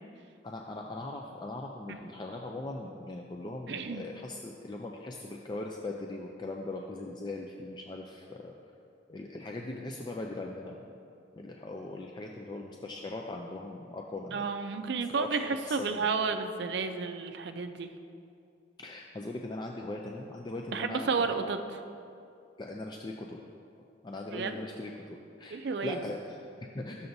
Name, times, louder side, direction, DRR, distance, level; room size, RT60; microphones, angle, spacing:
voice 1, 0.4-8.5 9.1-10.8 11.3-14.5 15.1-15.4 15.7-16.0 18.8-21.5 22.6-23.4 24.0-27.1, left 2 dB, 25° left, 0 dB, 0.3 m, -40 dB
voice 2, 3.7-4.0 14.3-17.9 20.7-21.6 24.3-24.6 25.5-26.0, right 4 dB, 60° right, 7 dB, 0.4 m, -31 dB
12.5 x 6.8 x 2.6 m, 2.5 s
head